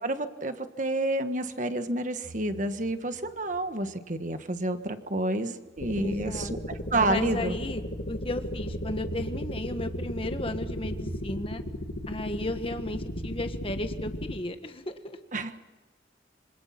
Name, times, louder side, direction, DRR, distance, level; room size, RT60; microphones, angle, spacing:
voice 1, 0.0-7.5 15.3-15.5, right 1 dB, 45° right, 9 dB, 1.5 m, -29 dB
sound 1, 2.2-4.8 5.1-5.4 5.7-5.8 8.3-13.4, right 2 dB, 65° right, 1.6 m, -43 dB
sound 2, 5.8-14.4, left 1 dB, 75° left, 2.0 m, -35 dB
voice 2, 6.0-6.5 7.0-7.8 8.1-11.6 12.1-15.2, left 1 dB, 30° left, 7 dB, 1.6 m, -34 dB
26.5 x 25.0 x 6.0 m, 1.2 s
head